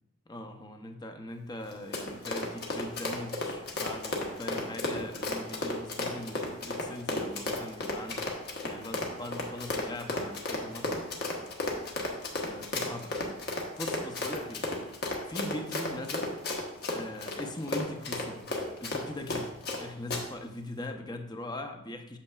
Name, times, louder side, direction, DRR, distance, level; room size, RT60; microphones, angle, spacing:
voice 1, 0.3-8.3 8.6-11.1 12.4-13.4 13.8-14.7 15.3-16.4 16.9-19.5 19.8-22.2, left 1 dB, 20° left, 5 dB, 0.6 m, -40 dB
Run, 1.7-19.8 20.1-20.2, left 2 dB, 50° left, 1.2 m, -33 dB
8.4 x 7.0 x 2.4 m, 0.84 s
head